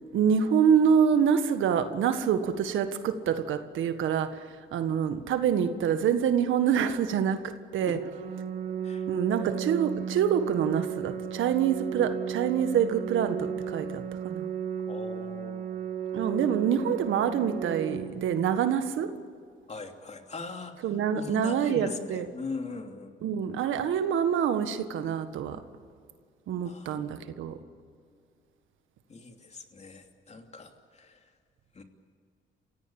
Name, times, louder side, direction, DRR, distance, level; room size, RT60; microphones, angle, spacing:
voice 1, 0.0-8.0 9.1-14.5 16.1-19.1 20.8-22.3 23.2-25.6 26.5-27.6, right 8 dB, 80° right, 10 dB, 1.6 m, -26 dB
Organ, 7.9-18.9, right 7 dB, 45° right, 1.4 m, -35 dB
voice 2, 14.9-15.7 16.3-16.4 19.7-20.8 21.1-23.1 26.6-27.0 29.1-31.2 31.7-31.8, left 4 dB, 35° left, 4 dB, 2.8 m, -40 dB
29.0 x 16.5 x 8.8 m, 2.2 s
cardioid pair, 90°, 20 cm